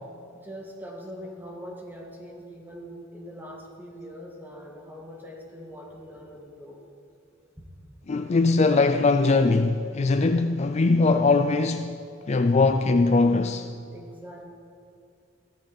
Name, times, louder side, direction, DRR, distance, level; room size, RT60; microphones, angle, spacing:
voice 1, 0.3-6.8 13.9-14.4, equal, 10° right, 2.0 m, -42 dB
voice 2, 8.1-13.7, left 3 dB, 35° left, 0.4 m, -21 dB
16.0 x 14.0 x 4.1 m
head